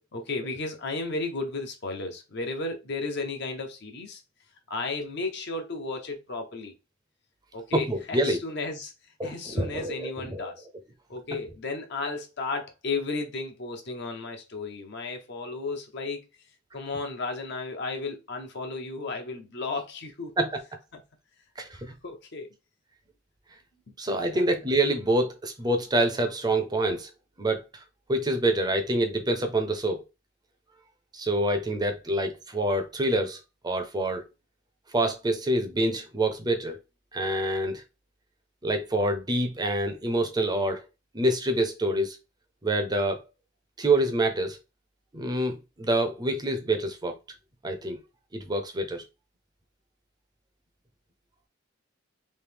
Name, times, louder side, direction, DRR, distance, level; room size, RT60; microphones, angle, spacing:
voice 1, 0.1-4.2 4.7-6.7 7.5-8.9 9.2-10.7 11.1-16.2 16.7-20.3 20.9-21.0 21.7-22.5 24.2-24.4, left 3 dB, 60° left, 0.8 m, -34 dB
voice 2, 7.7-8.4 9.2-10.5 20.4-20.5 21.6-21.8 24.0-27.1 27.4-27.8 28.1-30.0 31.1-34.2 34.9-36.8 37.1-37.8 38.6-40.8 41.1-42.2 42.6-43.2 43.8-44.6 45.1-47.2 47.6-48.0 48.3-49.0, right 1 dB, 20° right, 0.5 m, -26 dB
3.2 x 2.7 x 3.4 m
head